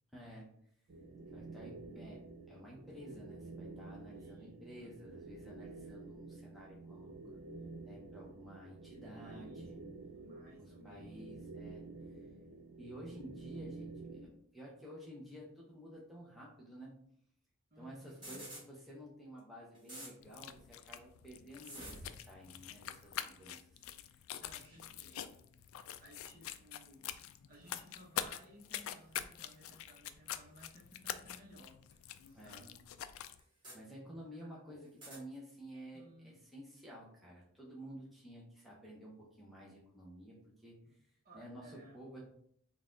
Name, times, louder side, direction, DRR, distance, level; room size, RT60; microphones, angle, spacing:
voice 1, 0.1-0.5 1.3-7.4 7.8-9.8 10.8-11.8 12.8-17.0 17.8-23.8 24.1-24.2 24.8-25.1 32.3-32.6 33.7-39.1 39.4-40.8 41.3-42.3, equal, ahead, -5 dB, 0.7 m, -52 dB
sound 1, 0.9-14.3, right 3 dB, 75° right, 0.5 m, -50 dB
voice 2, 4.1-5.0 8.9-11.4 17.7-18.4 24.4-25.4 26.0-27.1 27.5-31.8 32.2-32.9 34.3-34.6 35.9-36.4 40.8-40.9 41.2-42.0, equal, 40° right, -2 dB, 1.0 m, -59 dB
sound 2, 18.1-18.6 19.4-19.5 19.7-20.1 21.6-22.2 23.0-23.2 24.6-24.8 26.1-26.3 27.5-27.6 28.9-29.0 30.4-30.5 31.9-32.0 32.3-32.4 33.4-33.8 34.8-35.2, right 1 dB, 20° right, 1.7 m, -50 dB
sound 3, 20.2-33.4, left 10 dB, 75° left, 0.3 m, -46 dB
4.0 x 2.4 x 3.8 m, 0.65 s
head